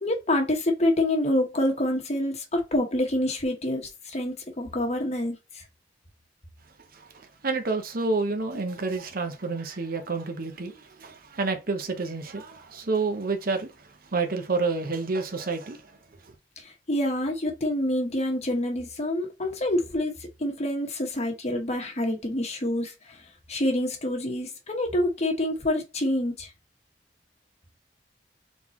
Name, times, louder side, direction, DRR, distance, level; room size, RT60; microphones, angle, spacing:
voice 1, 0.0-5.6 16.6-23.2 23.5-26.5, left 1 dB, 40° left, 1.1 m, -27 dB
voice 2, 6.9-15.9 16.2-16.3, right 3 dB, 55° right, 0.9 m, -29 dB
4.1 x 3.6 x 3.0 m
head